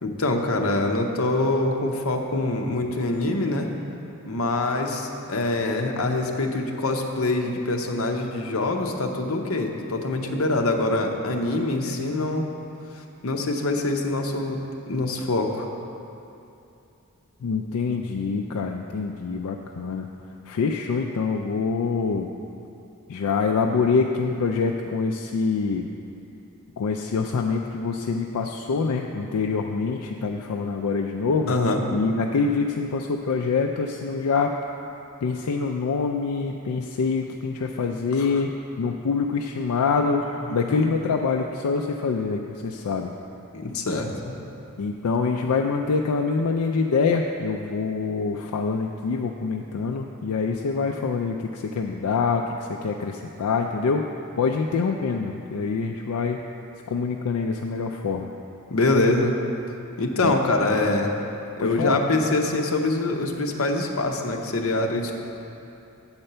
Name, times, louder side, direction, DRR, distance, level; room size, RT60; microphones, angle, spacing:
voice 1, 0.0-3.7 4.2-12.5 13.0-14.6 14.9-15.7 31.5-31.8 38.2-38.3 40.7-40.8 43.5-44.1 58.7-59.3 60.0-61.2 61.6-65.2, left 2 dB, 70° left, 2 dB, 0.8 m, -24 dB
voice 2, 17.4-20.1 20.5-22.3 23.1-25.9 26.8-31.6 31.9-34.6 35.2-38.5 38.8-40.2 40.5-43.1 44.8-54.1 54.4-56.4 56.9-58.3 60.2-60.3 61.6-62.0, left 4 dB, 90° left, 2 dB, 0.4 m, -25 dB
8.8 x 4.3 x 6.6 m, 2.7 s
head